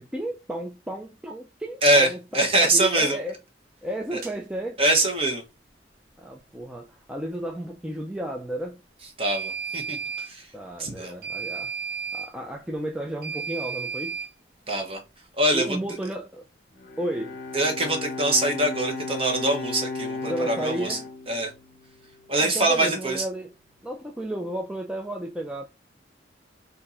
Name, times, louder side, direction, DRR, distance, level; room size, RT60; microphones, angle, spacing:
voice 1, 0.0-3.4 3.8-4.8 6.2-8.8 10.5-11.7 12.1-14.2 15.5-16.4 17.0-17.4 20.2-21.1 22.3-23.5 23.8-25.6, right 1 dB, 5° right, 0.4 m, -33 dB
voice 2, 1.8-3.2 4.1-4.2 4.8-5.4 9.2-10.0 10.3-10.5 10.8-11.1 14.7-15.0 15.4-15.8 17.5-21.0 21.3-21.5 22.3-23.2, right 1 dB, 30° right, 1.1 m, -23 dB
sound 1, 4.2-4.4 9.2-10.3 11.2-12.3 13.2-14.3, right 6 dB, 55° right, 0.9 m, -33 dB
Bowed string instrument, 16.8-22.2, left 3 dB, 45° left, 0.7 m, -35 dB
4.4 x 2.7 x 4.2 m
head